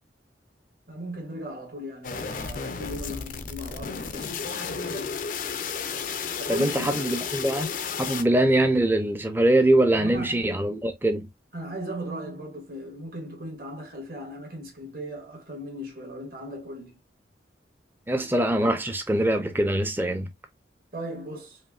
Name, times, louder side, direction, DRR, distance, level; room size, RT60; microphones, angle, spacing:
voice 1, 0.9-5.2 6.4-7.2 9.9-10.7 11.5-17.0 20.9-21.6, right 1 dB, 50° right, 1.7 m, -38 dB
sound 1, 2.0-8.2, left 6 dB, 45° left, 0.5 m, -33 dB
voice 2, 6.5-7.7 8.0-11.3 18.1-20.3, right 1 dB, 10° right, 0.6 m, -23 dB
5.0 x 2.6 x 2.4 m
head